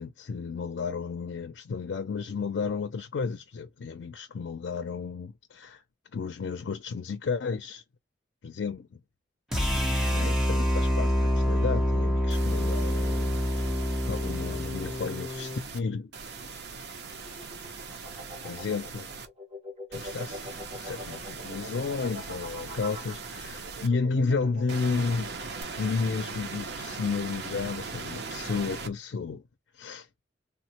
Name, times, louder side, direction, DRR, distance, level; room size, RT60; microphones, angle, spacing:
voice 1, 0.0-5.8 6.1-7.8 8.4-8.9 10.1-13.4 14.1-16.1 18.4-19.1 19.9-20.4 20.7-25.3 25.8-29.4 29.7-30.1, left 4 dB, 85° left, 0.4 m, -32 dB
sound 1, 9.5-15.7, equal, ahead, 0.9 m, -26 dB
sound 2, 12.3-15.8 16.1-19.3 19.9-23.9 24.7-28.9, right 4 dB, 65° right, 0.7 m, -40 dB
sound 3, 17.1-25.6, equal, 35° right, 1.2 m, -44 dB
3.5 x 2.1 x 2.8 m
head